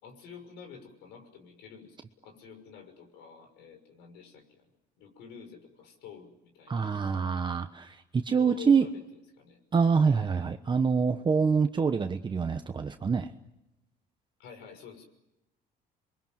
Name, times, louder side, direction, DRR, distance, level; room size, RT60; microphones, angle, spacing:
voice 1, 0.0-2.0 2.2-4.6 5.0-7.0 8.4-9.0 9.4-9.6 14.4-15.0, left 7 dB, 90° left, 6 dB, 6.1 m, -48 dB
voice 2, 6.7-8.8 9.7-13.3, right 5 dB, 25° right, 7 dB, 1.1 m, -26 dB
28.5 x 23.0 x 7.7 m, 0.89 s
cardioid pair, 110°, 17 cm